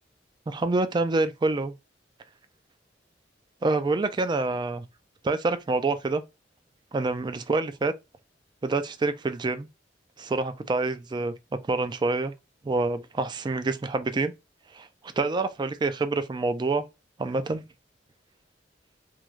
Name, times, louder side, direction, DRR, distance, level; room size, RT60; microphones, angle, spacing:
voice 1, 0.5-1.7 3.6-4.8 5.2-6.2 6.9-7.9 8.6-9.7 10.2-11.3 11.7-12.3 12.6-14.3 14.7-14.9 15.2-16.8 17.2-17.6, right 3 dB, 25° right, 0.3 m, -26 dB
3.1 x 2.3 x 2.4 m
head